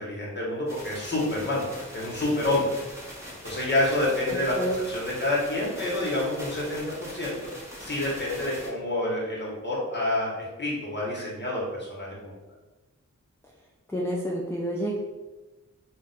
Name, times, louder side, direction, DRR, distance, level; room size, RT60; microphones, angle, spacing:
voice 1, 0.0-1.7 1.9-2.7 3.4-4.5 4.9-7.3 7.8-12.3, left 1 dB, 35° left, -4 dB, 1.0 m, -28 dB
sound 1, 0.7-8.7, equal, 10° right, 0.9 m, -42 dB
voice 2, 13.9-15.0, equal, 10° left, -3 dB, 0.3 m, -29 dB
2.5 x 2.1 x 3.9 m, 1.1 s
wide cardioid pair, 80°, 31 cm